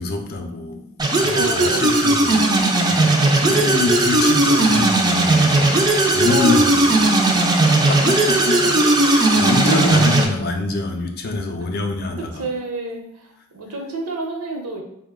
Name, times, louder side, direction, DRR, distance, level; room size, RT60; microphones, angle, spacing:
voice 1, 0.0-5.7 6.1-12.5, left 3 dB, 45° left, 3 dB, 0.4 m, -26 dB
sound 1, 1.0-10.2, right 2 dB, 15° right, 0.4 m, -17 dB
voice 2, 1.1-1.8 3.1-3.8 5.5-5.8 6.3-6.7 9.0-9.1 9.5-10.0 12.4-14.8, right 2 dB, 85° right, 1 dB, 0.8 m, -29 dB
4.6 x 2.1 x 3.6 m, 0.78 s
head